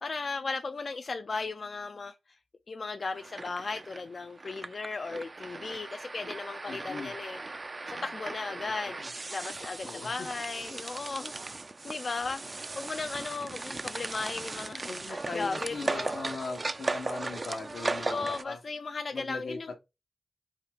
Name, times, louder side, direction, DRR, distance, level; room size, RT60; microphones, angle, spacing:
voice 1, 0.0-2.1 2.7-7.4 7.9-9.0 9.3-11.5 11.8-16.1 18.1-19.8, left 4 dB, 50° left, 0.4 m, -36 dB
sound 1, 3.1-18.4, right 3 dB, 35° right, 0.3 m, -37 dB
voice 2, 6.7-7.2 8.9-9.1 9.8-10.3 14.8-18.6 19.1-19.6, left 3 dB, 85° left, 1.1 m, -39 dB
4.8 x 2.3 x 4.5 m
wide cardioid pair, 90°, 0 cm